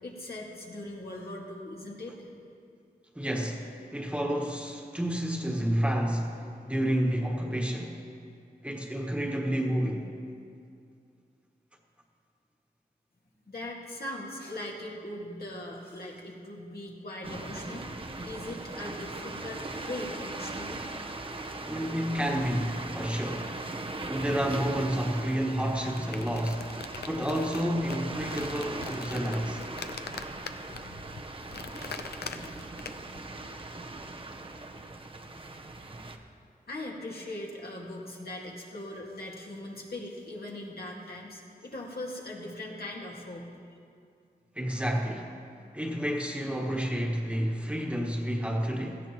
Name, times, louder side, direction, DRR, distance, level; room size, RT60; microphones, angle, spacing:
voice 1, 0.0-2.3 13.5-17.9 18.2-20.9 36.7-43.5, left 1 dB, 70° left, -3 dB, 2.0 m, -40 dB
voice 2, 3.1-8.0 8.6-10.1 21.7-23.5 24.1-26.7 27.0-29.6 44.5-45.3 45.7-49.0, equal, 5° right, 0 dB, 1.4 m, -30 dB
sound 1, 17.2-36.2, right 2 dB, 35° right, 0.8 m, -39 dB
sound 2, 25.7-33.2, left 5 dB, 85° left, 0.6 m, -43 dB
16.5 x 14.5 x 3.0 m, 2.4 s
wide cardioid pair, 90°, 16 cm